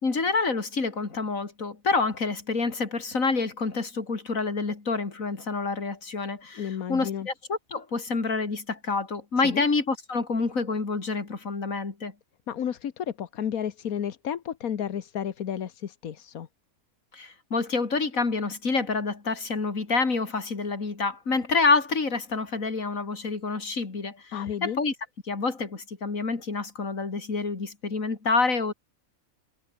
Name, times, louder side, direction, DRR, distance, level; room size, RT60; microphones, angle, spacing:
voice 1, 0.0-12.1 17.1-24.3 24.6-24.9 25.3-28.7, left 4 dB, 70° left, 3.4 m, -27 dB
voice 2, 6.5-7.3 9.4-9.6 12.5-16.5 24.3-24.8, left 9 dB, 90° left, 1.6 m, -32 dB
omnidirectional pair, 1.5 m